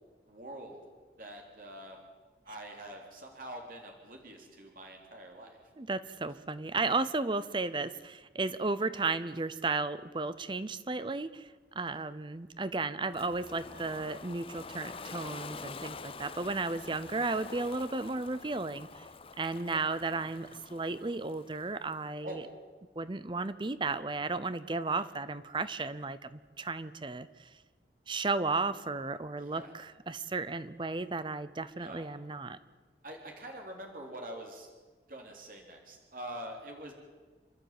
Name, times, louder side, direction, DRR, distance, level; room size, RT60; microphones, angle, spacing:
voice 1, 0.3-0.8 1.2-2.0 2.4-5.6 19.7-19.9 22.2-22.4 24.9-25.1 29.4-29.7 31.8-32.1 33.0-34.7 35.1-36.9, right 1 dB, 50° right, 1 dB, 3.5 m, -45 dB
voice 2, 5.8-19.0 19.4-22.5 23.0-27.5 28.1-32.6, right 3 dB, 25° right, 14 dB, 0.6 m, -34 dB
Ocean, 13.1-22.0, left 4 dB, 30° left, 0.6 m, -47 dB
29.0 x 12.0 x 9.0 m, 1.4 s
head